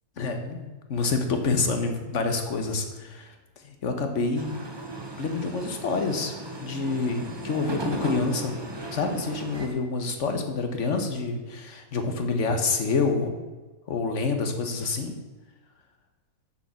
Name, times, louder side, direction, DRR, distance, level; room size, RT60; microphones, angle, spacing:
voice 1, 0.2-3.3 3.6-4.5 5.2-8.5 8.9-13.4 13.9-15.1, left 4 dB, 50° left, 6 dB, 1.4 m, -27 dB
sound 1, 4.4-9.7, right 1 dB, 20° right, 0.8 m, -36 dB
7.4 x 7.1 x 7.0 m, 1.3 s
omnidirectional pair, 1.7 m